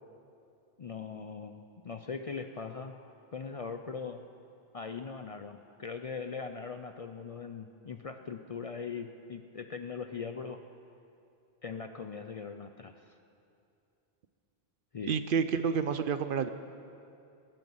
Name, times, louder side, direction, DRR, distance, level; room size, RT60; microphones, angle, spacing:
voice 1, 0.8-3.0 3.3-4.2 4.7-10.6 11.6-13.1 14.9-15.2, left 5 dB, 45° left, 7 dB, 0.5 m, -40 dB
voice 2, 15.1-16.5, right 6 dB, 60° right, 11 dB, 0.7 m, -29 dB
21.5 x 9.0 x 5.5 m, 2.6 s
omnidirectional pair, 1.1 m